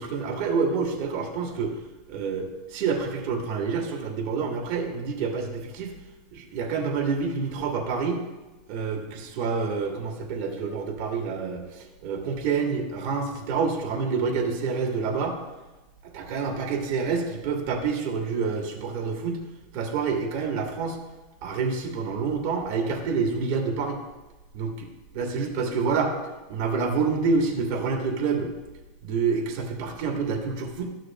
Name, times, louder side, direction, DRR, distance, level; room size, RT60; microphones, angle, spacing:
voice 1, 0.0-1.8 2.1-5.9 6.3-8.2 8.7-15.4 16.1-19.4 19.7-21.0 21.4-24.0 24.5-24.9 25.1-26.1 26.5-28.5 29.0-30.9, right 5 dB, 55° right, 1 dB, 1.4 m, -27 dB
13.0 x 6.3 x 2.2 m, 1.1 s
supercardioid pair, 145°, 0 cm